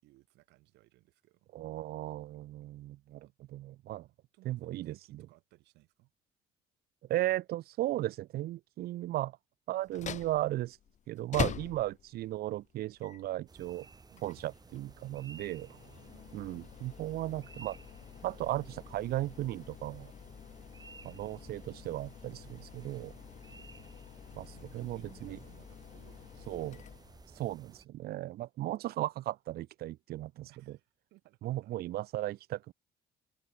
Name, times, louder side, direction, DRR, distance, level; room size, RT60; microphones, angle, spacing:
voice 1, 0.0-1.5 3.2-3.3 4.1-6.1 14.1-14.2 15.7-16.8 20.8-21.0 24.5-26.8 30.5-31.8, right 20 dB, 90° right, 4.5 m, -63 dB
voice 2, 1.5-4.1 4.4-5.2 7.1-9.4 9.7-10.8 11.1-13.9 14.2-15.7 16.3-17.8 18.2-20.1 21.0-23.1 24.3-25.4 26.5-26.8 27.3-30.8 31.4-32.7, right 15 dB, 65° right, 0.6 m, -36 dB
sound 1, 9.8-27.6, left 9 dB, 45° left, 1.1 m, -45 dB
sound 2, 13.5-27.9, right 4 dB, 25° right, 1.6 m, -56 dB
cardioid pair, 110°, 17 cm